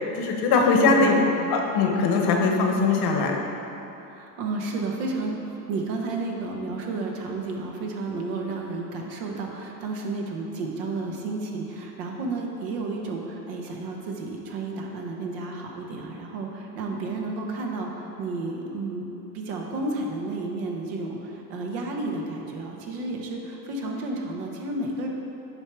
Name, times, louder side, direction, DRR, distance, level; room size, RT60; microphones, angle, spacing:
voice 1, 0.2-1.1 1.5-3.4 16.9-17.0, left 4 dB, 55° left, 1 dB, 1.2 m, -21 dB
voice 2, 0.8-1.3 4.0-19.1 19.3-25.1, right 3 dB, 75° right, 0 dB, 1.2 m, -32 dB
8.1 x 3.5 x 6.2 m, 3.0 s
supercardioid pair, 95°, 43 cm